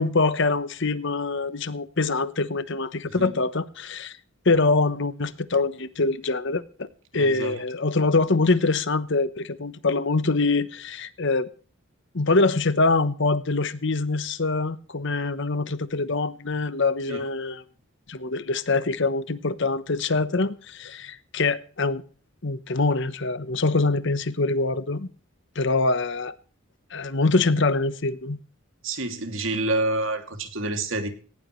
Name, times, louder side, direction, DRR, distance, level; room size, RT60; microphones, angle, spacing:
voice 1, 0.0-4.2 4.4-6.9 7.1-11.5 12.1-17.6 18.1-22.0 22.4-25.1 25.5-26.3 26.9-28.4, left 3 dB, 55° left, 1.0 m, -24 dB
voice 2, 3.1-3.4 7.1-7.6 17.1-17.3 28.8-31.1, right 2 dB, 65° right, 2.6 m, -28 dB
18.5 x 17.5 x 3.2 m
head